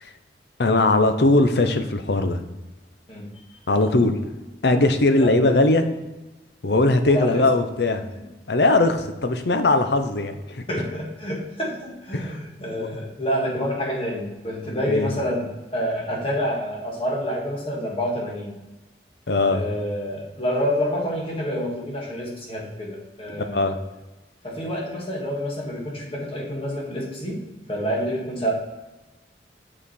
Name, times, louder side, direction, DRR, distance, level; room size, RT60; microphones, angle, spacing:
voice 1, 0.6-2.4 3.7-4.2 4.6-5.9 6.6-8.1 8.5-10.6 12.1-12.3 12.8-12.9 14.7-15.1 19.3-19.6 23.4-23.8, left 2 dB, 70° left, 8 dB, 0.7 m, -20 dB
voice 2, 3.1-3.4 5.2-5.3 7.1-7.4 10.7-18.5 19.5-23.7 24.4-27.4 27.7-28.5, equal, 30° left, -2 dB, 1.7 m, -28 dB
7.3 x 5.0 x 4.3 m, 1.1 s
head